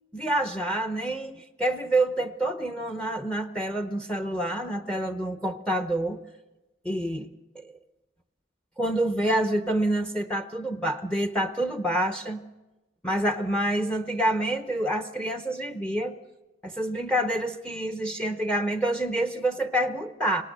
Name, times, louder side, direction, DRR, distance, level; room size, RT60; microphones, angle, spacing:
voice 1, 0.1-6.2 6.8-7.3 7.5-7.7 8.8-12.4 13.0-16.2 16.6-20.4, right 1 dB, 5° left, 7 dB, 0.8 m, -27 dB
26.0 x 18.5 x 6.7 m, 1.0 s
head